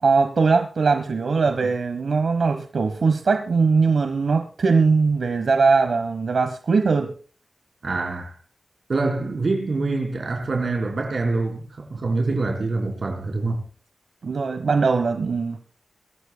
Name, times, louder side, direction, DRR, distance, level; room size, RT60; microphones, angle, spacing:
voice 1, 0.0-7.1 14.2-15.6, right 4 dB, 90° right, 1.1 m, -20 dB
voice 2, 7.8-8.4 8.9-13.6, right 3 dB, 60° right, 4.0 m, -25 dB
23.0 x 13.5 x 2.2 m
wide cardioid pair, 105°, 0 cm